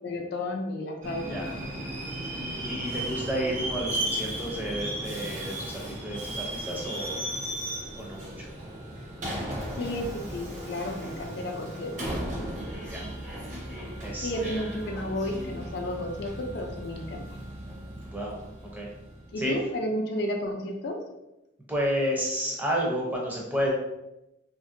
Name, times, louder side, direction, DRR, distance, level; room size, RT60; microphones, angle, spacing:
voice 1, 0.0-1.5 9.7-12.2 14.2-17.4 19.3-21.0, left 1 dB, 55° left, 2 dB, 0.4 m, -32 dB
Subway metro underground, 1.0-19.5, right 1 dB, 40° right, 0.8 m, -36 dB
voice 2, 2.6-7.2 7.9-8.5 12.9-13.0 13.6-14.6 18.1-18.4 18.7-18.9 19.4-19.6 21.7-23.7, equal, 10° right, -3 dB, 0.5 m, -31 dB
2.9 x 2.6 x 2.5 m, 0.92 s
head